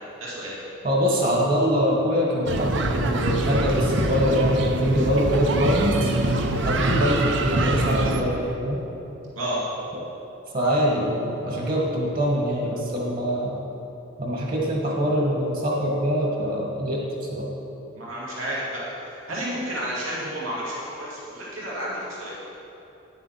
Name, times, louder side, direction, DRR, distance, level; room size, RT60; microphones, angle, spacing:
voice 1, 0.2-0.5 9.3-9.6 17.9-22.3, right 1 dB, 85° right, -7 dB, 2.5 m, -31 dB
voice 2, 0.8-6.1 6.6-8.8 10.5-13.6 14.2-17.0 17.3-17.5, equal, 45° right, -2 dB, 1.8 m, -24 dB
sound 1, 2.5-8.2, right 2 dB, 65° right, 0.8 m, -24 dB
10.5 x 7.5 x 5.8 m, 2.9 s
head